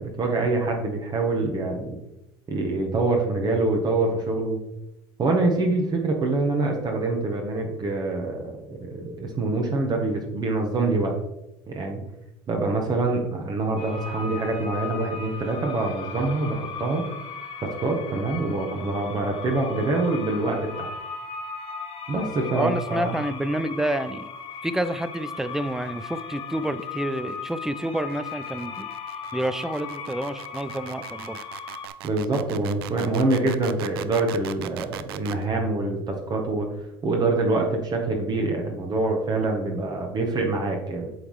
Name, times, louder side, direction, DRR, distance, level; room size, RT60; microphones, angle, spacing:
voice 1, 0.0-2.0 2.5-4.6 5.2-11.1 11.7-12.0 12.5-17.1 17.6-20.9 22.1-23.1 32.0-36.7 37.0-41.1, right 2 dB, 35° right, 2 dB, 1.4 m, -25 dB
sound 1, 13.8-31.9, left 5 dB, 50° left, 1.3 m, -37 dB
voice 2, 22.5-24.3 24.6-28.9 29.3-31.4, right 1 dB, 5° right, 12 dB, 0.5 m, -28 dB
sound 2, 26.2-35.4, right 13 dB, 85° right, 0.4 m, -40 dB
7.9 x 3.9 x 4.8 m, 0.90 s
hypercardioid pair, 85°, 12 cm